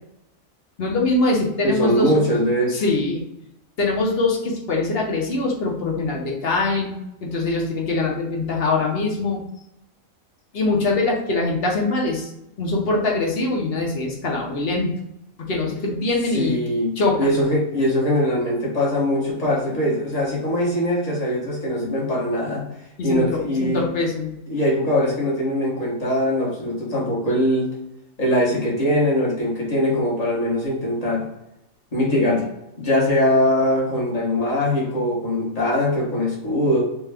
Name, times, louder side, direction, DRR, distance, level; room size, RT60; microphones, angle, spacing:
voice 1, 0.8-2.2 2.7-3.2 3.8-9.4 10.5-12.3 12.6-14.9 15.4-16.6 17.0-17.4 23.0-24.3, left 2 dB, 55° left, -1 dB, 0.8 m, -23 dB
voice 2, 1.6-2.8 16.3-16.9 17.2-22.7 23.0-23.8 24.5-27.7 28.2-31.2 31.9-32.5 32.8-36.8, left 1 dB, 30° left, -5 dB, 1.0 m, -21 dB
3.3 x 2.2 x 3.3 m, 0.85 s
omnidirectional pair, 1.5 m